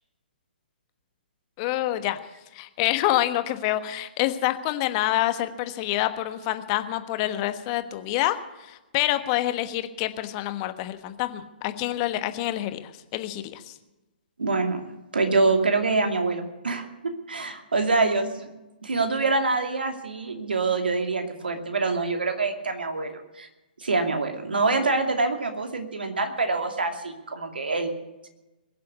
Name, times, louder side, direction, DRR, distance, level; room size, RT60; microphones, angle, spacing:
voice 1, 1.6-2.2 2.5-13.8, left 15 dB, 35° left, 10 dB, 1.2 m, -27 dB
voice 2, 14.4-14.8 15.1-18.5 18.8-23.5 23.8-27.9 28.2-28.3, right 3 dB, 75° right, 5 dB, 2.5 m, -25 dB
21.5 x 7.6 x 8.3 m, 1.1 s
figure-of-eight pair, 125°, 5 cm